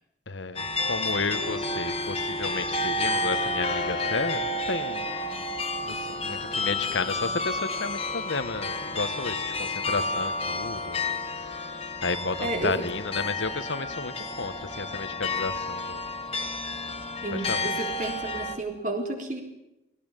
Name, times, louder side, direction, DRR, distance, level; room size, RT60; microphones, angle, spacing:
voice 1, 0.3-5.1 5.3-5.4 5.8-11.7 12.0-16.1 17.3-17.7, left 3 dB, 80° left, 11 dB, 1.4 m, -32 dB
sound 1, 0.6-18.6, left 2 dB, 30° left, 1.8 m, -31 dB
voice 2, 12.4-12.9 13.1-13.3 17.2-19.4, right 2 dB, 40° right, 3 dB, 3.6 m, -32 dB
19.0 x 17.5 x 9.0 m, 0.93 s
head